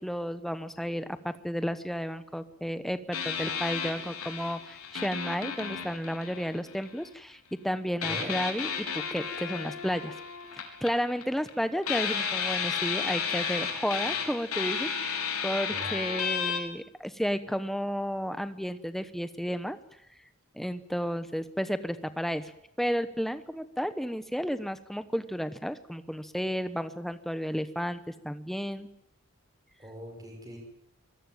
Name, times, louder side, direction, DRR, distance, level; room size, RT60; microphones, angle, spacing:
voice 1, 0.0-10.2 10.8-19.8 20.5-22.5 22.8-28.9, equal, ahead, 12 dB, 1.0 m, -32 dB
sound 1, 3.1-7.0 8.0-11.5 11.8-16.6, left 6 dB, 90° left, 4.3 m, -33 dB
voice 2, 29.8-30.6, equal, 15° right, 2 dB, 5.6 m, -41 dB
25.0 x 18.0 x 9.1 m, 0.77 s
head